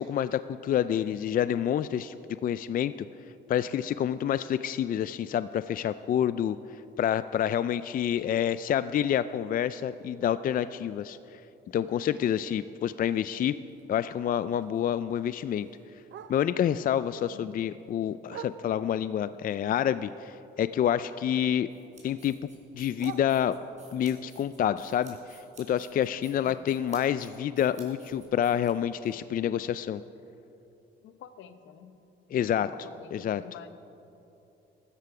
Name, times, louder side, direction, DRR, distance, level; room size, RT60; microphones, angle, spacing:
voice 1, 0.0-2.2 2.4-2.9 3.5-11.4 11.7-13.6 13.9-15.7 16.3-21.7 22.0-22.3 22.7-23.6 23.9-30.0 32.3-32.7 33.1-33.4, left 10 dB, 45° left, 14 dB, 0.4 m, -28 dB
Bark, 13.6-16.8 17.2-19.1 19.5-21.4 21.6-23.9 24.4-28.3 28.6-28.7 29.0-29.4 29.9-30.0 30.3-30.4 30.9-31.0, right 9 dB, 70° right, 0.8 m, -50 dB
voice 2, 17.3-17.6 26.4-26.7 31.0-32.0 32.6-33.7, left 8 dB, 80° left, 11 dB, 0.9 m, -48 dB
sound 1, 21.7-29.1, right 3 dB, 35° right, 4.1 m, -55 dB
15.5 x 12.5 x 4.9 m, 2.9 s
cardioid pair, 90°, 20 cm